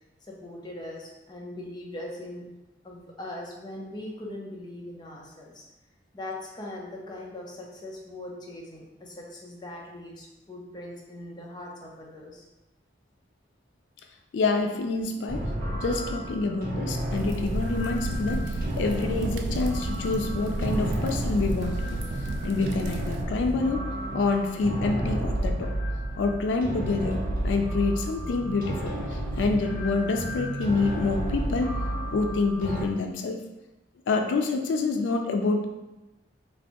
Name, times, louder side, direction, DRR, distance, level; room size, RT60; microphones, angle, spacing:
voice 1, 0.2-2.5 2.8-5.6 6.1-12.5, left 1 dB, 25° left, -2 dB, 0.5 m, -40 dB
voice 2, 14.3-15.5 15.7-22.0 22.4-23.8 24.1-25.7 26.2-28.9 29.4-31.7 32.1-33.4 34.1-35.7, left 3 dB, 90° left, 4 dB, 0.3 m, -27 dB
sound 1, 15.3-32.8, right 1 dB, 55° right, 0.8 m, -32 dB
sound 2, 17.1-23.3, right 2 dB, 75° right, 0.3 m, -32 dB
3.2 x 2.6 x 2.8 m, 1.0 s
head